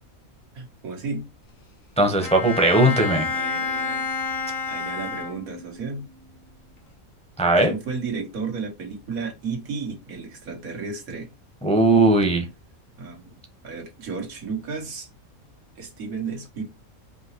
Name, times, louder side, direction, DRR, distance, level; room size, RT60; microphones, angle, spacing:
voice 1, 0.5-1.3 3.3-4.1 4.7-6.1 7.6-11.3 13.0-13.4 13.6-15.1 15.8-16.6, right 4 dB, 85° right, 1.8 m, -33 dB
voice 2, 2.0-3.3 7.4-7.7 11.6-12.5, right 2 dB, 5° left, 0.7 m, -18 dB
Bowed string instrument, 2.2-5.9, left 5 dB, 70° left, 1.4 m, -29 dB
5.3 x 2.9 x 2.9 m
omnidirectional pair, 1.4 m